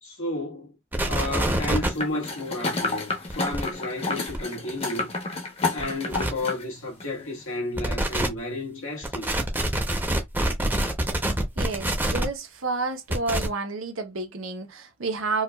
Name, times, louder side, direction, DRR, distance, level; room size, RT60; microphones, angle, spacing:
voice 1, 0.0-0.7 1.1-5.1 5.7-9.4, left 2 dB, 90° left, 1.6 m, -32 dB
sound 1, 0.9-1.9 3.3-3.6 4.3-4.4 5.8-5.9 6.1-6.3 7.8-8.3 9.0-12.2 13.1-13.5, right 1 dB, 10° right, 0.6 m, -25 dB
sound 2, 2.0-6.6 7.0-7.1, left 3 dB, 30° left, 0.8 m, -30 dB
voice 2, 11.6-15.4, right 3 dB, 75° right, 0.8 m, -30 dB
4.5 x 2.3 x 2.3 m
head